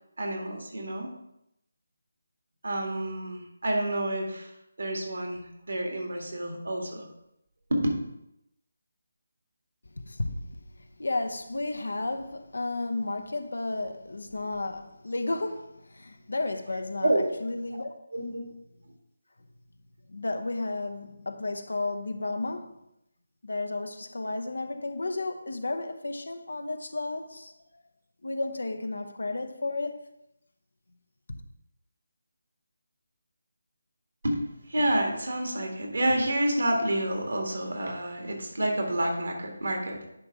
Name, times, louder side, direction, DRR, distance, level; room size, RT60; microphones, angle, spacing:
voice 1, 0.2-1.1 2.6-4.5 4.8-7.0 7.7-7.9 16.6-17.2 18.1-18.4 34.2-34.4 34.7-40.1, right 1 dB, 65° right, 2.0 m, -29 dB
voice 2, 9.9-10.6 11.0-17.9 20.1-22.8 23.4-27.5 28.2-30.0 31.3-31.4, left 2 dB, 65° left, 0.8 m, -33 dB
9.9 x 3.5 x 5.1 m
figure-of-eight pair, 155°, 0 cm